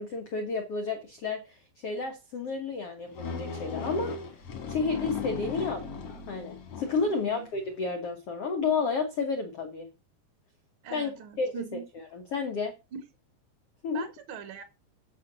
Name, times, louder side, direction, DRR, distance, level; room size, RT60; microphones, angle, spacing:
voice 1, 0.0-4.1 4.7-5.8 6.3-9.9 10.9-11.1 11.4-11.5 12.1-12.7 13.8-14.0, left 4 dB, 90° left, 1.3 m, -31 dB
sound 1, 3.1-7.2, left 5 dB, 45° left, 2.3 m, -37 dB
voice 2, 10.8-11.8 13.9-14.6, right 8 dB, 65° right, 1.3 m, -41 dB
9.4 x 5.8 x 6.0 m
omnidirectional pair, 5.0 m